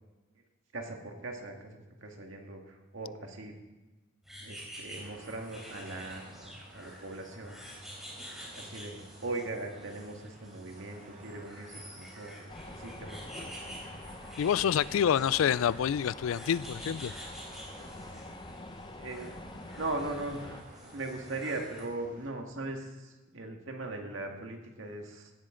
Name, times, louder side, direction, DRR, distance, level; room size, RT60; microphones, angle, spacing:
voice 1, 0.7-3.5 4.4-7.6 8.5-13.7 19.0-19.3 19.8-20.7 20.9-25.3, right 2 dB, 70° right, 1.9 m, -40 dB
sound 1, 4.2-21.8, equal, ahead, 3.6 m, -49 dB
sound 2, 4.9-22.3, right 2 dB, 40° right, 2.0 m, -55 dB
sound 3, 12.5-20.6, left 1 dB, 25° left, 0.8 m, -46 dB
voice 2, 14.4-17.1, left 9 dB, 85° left, 0.3 m, -27 dB
16.5 x 12.0 x 3.8 m
head